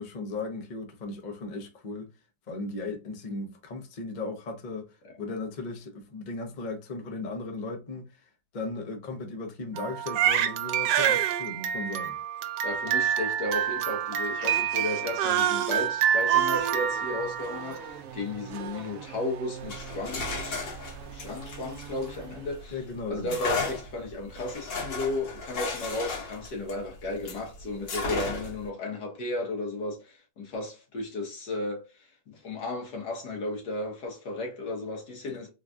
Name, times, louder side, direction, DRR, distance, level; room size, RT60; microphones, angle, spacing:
voice 1, 0.0-2.1 2.5-4.9 5.2-8.2 8.5-12.2 22.7-23.4, left 3 dB, 45° left, 0.5 m, -36 dB
Crying sobbing, 9.8-17.9, right 10 dB, 90° right, 1.3 m, -27 dB
voice 2, 12.6-22.8 23.1-35.5, left 2 dB, 70° left, 1.7 m, -34 dB
Race car auto racing / Accelerating revving vroom, 16.3-23.0, right 8 dB, 65° right, 0.9 m, -44 dB
sound 1, 19.6-22.6 23.3-27.5 27.9-28.7, left 3 dB, 85° left, 1.8 m, -34 dB
3.9 x 2.3 x 2.4 m
omnidirectional pair, 1.9 m